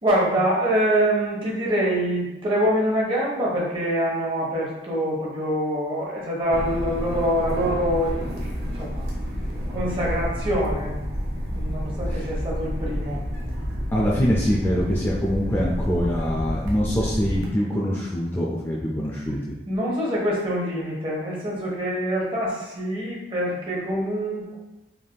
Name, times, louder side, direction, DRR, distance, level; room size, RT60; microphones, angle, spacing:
voice 1, 0.0-9.1 9.7-11.0 11.5-13.2 19.7-24.6, equal, 30° right, -4 dB, 0.8 m, -25 dB
sound 1, 6.5-17.5, equal, 70° right, 0.7 m, -29 dB
voice 2, 13.9-19.4, equal, 15° left, -4 dB, 0.3 m, -24 dB
3.4 x 2.5 x 2.2 m, 0.99 s
head